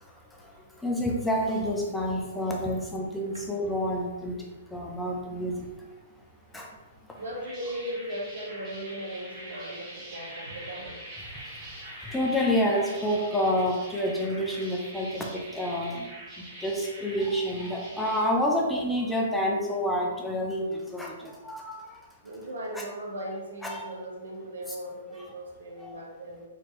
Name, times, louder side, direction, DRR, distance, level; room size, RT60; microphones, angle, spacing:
voice 1, 0.0-5.7 6.5-6.7 7.0-7.2 11.3-16.1 16.4-22.0 22.7-22.8 23.6-23.9 25.8-26.0, equal, 5° left, -1 dB, 0.6 m, -29 dB
sound 1, 7.1-18.2, right 1 dB, 20° right, 1.4 m, -44 dB
voice 2, 7.2-11.0 22.2-26.4, equal, 85° right, -2 dB, 1.1 m, -38 dB
4.2 x 2.9 x 3.1 m, 1.2 s
hypercardioid pair, 130°, 0 cm